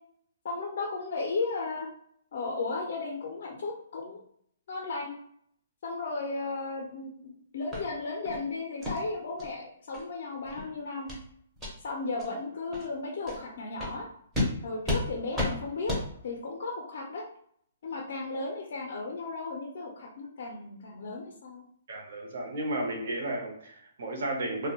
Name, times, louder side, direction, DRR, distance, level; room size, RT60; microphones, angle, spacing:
voice 1, 0.4-1.9 2.3-4.2 4.7-5.1 5.8-11.1 11.8-14.1 14.6-15.9 16.2-17.3 17.8-21.6, left 3 dB, 45° left, 1 dB, 0.4 m, -35 dB
sound 1, 7.7-7.8 8.2-8.4 8.8-9.0 9.4-9.5 9.9-10.0 10.4-10.6 11.1-11.2 11.6-11.7 12.2-12.3 12.7-12.9 13.3-13.4 13.8-13.9 14.3-14.5 14.8-15.0 15.3-15.5 15.9-16.0, left 1 dB, 5° right, 0.5 m, -31 dB
voice 2, 21.9-24.7, right 1 dB, 50° right, 1 dB, 0.6 m, -33 dB
2.5 x 2.0 x 2.8 m, 0.66 s
hypercardioid pair, 180°, 0 cm